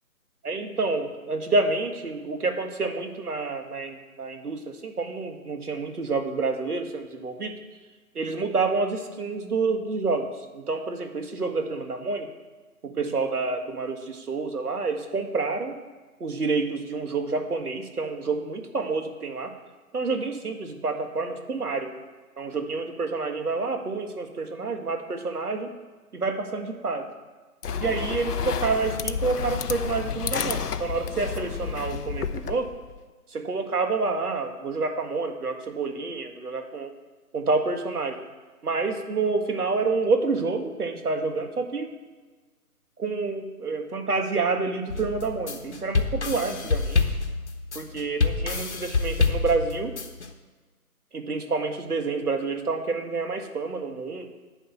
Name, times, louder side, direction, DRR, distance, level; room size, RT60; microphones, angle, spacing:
voice 1, 0.4-7.6 8.2-12.3 12.8-15.8 16.2-19.5 19.9-21.9 22.4-25.7 26.1-27.1 27.8-32.7 33.3-36.9 37.3-38.2 38.6-41.9 43.0-47.2 47.8-49.9 51.1-54.3, right 3 dB, 75° right, 5 dB, 1.9 m, -28 dB
sound 1, 27.6-33.0, left 7 dB, 85° left, 0.8 m, -30 dB
sound 2, 44.9-50.3, left 4 dB, 45° left, 1.2 m, -26 dB
11.0 x 5.3 x 8.2 m, 1.3 s
hypercardioid pair, 170°, 45 cm